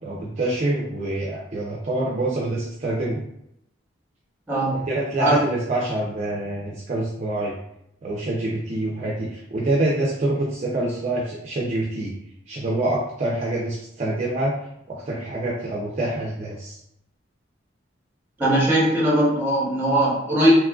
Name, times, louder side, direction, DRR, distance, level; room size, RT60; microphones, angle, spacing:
voice 1, 0.0-3.2 4.7-7.6 8.0-12.2 12.5-14.6 14.9-16.8, right 2 dB, 35° right, -5 dB, 0.4 m, -26 dB
voice 2, 18.4-20.5, right 1 dB, 10° right, -6 dB, 0.9 m, -20 dB
2.9 x 2.4 x 2.3 m, 0.78 s
head